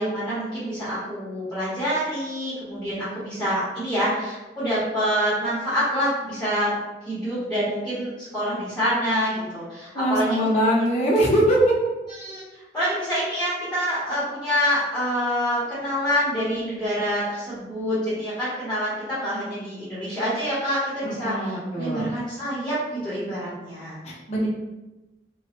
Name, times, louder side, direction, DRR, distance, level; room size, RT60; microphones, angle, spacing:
voice 1, 0.0-6.7 7.0-10.7 11.0-11.1 12.1-24.0 24.4-24.5, equal, 5° left, -11 dB, 1.1 m, -26 dB
voice 2, 9.9-11.6 21.0-22.1 24.0-24.5, equal, 40° left, -5 dB, 0.7 m, -22 dB
3.0 x 2.2 x 2.9 m, 1.1 s
head